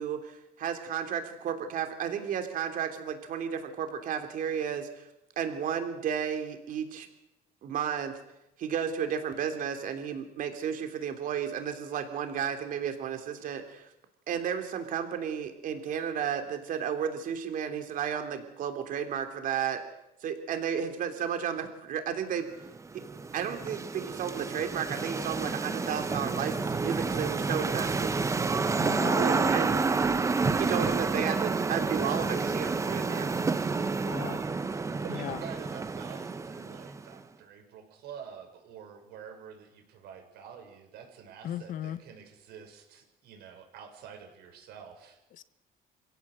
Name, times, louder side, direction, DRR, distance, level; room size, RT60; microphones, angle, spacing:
voice 1, 0.0-5.1 5.4-7.1 7.6-8.1 8.6-13.9 14.3-19.8 20.2-22.5 23.3-28.2 29.2-29.7 30.6-33.3, right 8 dB, 55° right, 6 dB, 3.4 m, -33 dB
sound 1, 22.6-37.1, right 4 dB, 20° right, 1.0 m, -29 dB
voice 2, 28.8-29.2 34.1-34.4 35.1-35.4 41.4-42.0 45.3-45.4, left 10 dB, 55° left, 14 dB, 1.2 m, -37 dB
voice 3, 35.0-45.2, right 7 dB, 80° right, 4 dB, 6.4 m, -47 dB
27.5 x 16.5 x 7.9 m, 0.88 s
cardioid pair, 150°, 16 cm